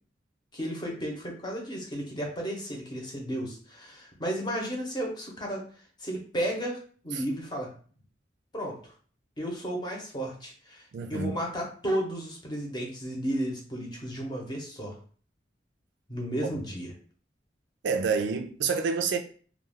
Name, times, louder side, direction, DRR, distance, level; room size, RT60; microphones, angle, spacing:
voice 1, 0.5-5.7 6.0-7.7 8.5-8.9 9.4-15.0 16.1-16.9, equal, 25° left, 0.7 m, -33 dB
voice 2, 10.9-11.4 17.8-19.2, right 5 dB, 80° right, 0.4 m, -28 dB
2.3 x 2.2 x 3.3 m
head